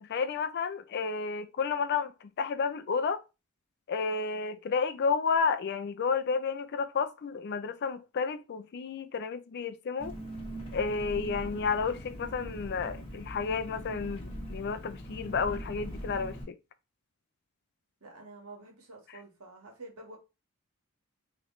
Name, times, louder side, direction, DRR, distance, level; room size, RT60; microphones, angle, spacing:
voice 1, 0.0-3.2 3.9-10.1 10.7-16.6, left 5 dB, 50° left, 0.4 m, -31 dB
Engine, 10.0-16.4, equal, 25° left, 1.2 m, -41 dB
voice 2, 18.0-20.2, right 2 dB, 70° right, 1.5 m, -48 dB
3.9 x 3.1 x 3.0 m
head